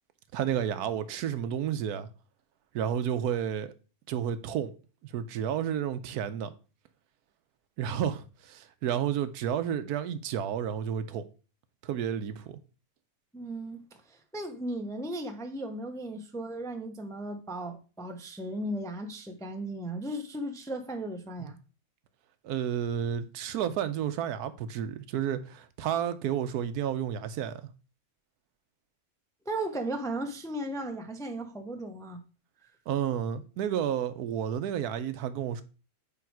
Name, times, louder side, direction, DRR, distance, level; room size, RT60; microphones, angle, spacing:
voice 1, 0.3-2.1 2.7-3.7 4.1-4.7 5.0-6.5 7.8-11.2 11.8-12.6 21.4-21.5 22.4-27.5 32.9-35.6, right 9 dB, 85° right, 1.2 m, -31 dB
voice 2, 13.3-13.8 14.1-21.6 29.5-32.2, right 1 dB, 5° left, 0.4 m, -36 dB
8.6 x 3.5 x 4.6 m
omnidirectional pair, 1.6 m